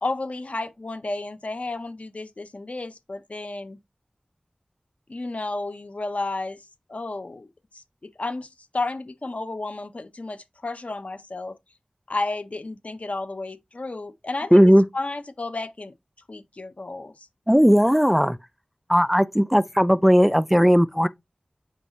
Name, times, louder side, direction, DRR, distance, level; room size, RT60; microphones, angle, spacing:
voice 1, 0.0-3.8 5.1-6.6 6.9-7.5 7.7-11.6 12.1-15.9 16.3-17.3, left 2 dB, 60° left, 0.7 m, -32 dB
voice 2, 14.5-14.9 17.5-18.4 18.9-21.1, equal, 5° right, 0.3 m, -17 dB
5.3 x 2.4 x 4.0 m
wide cardioid pair, 40°, 3 cm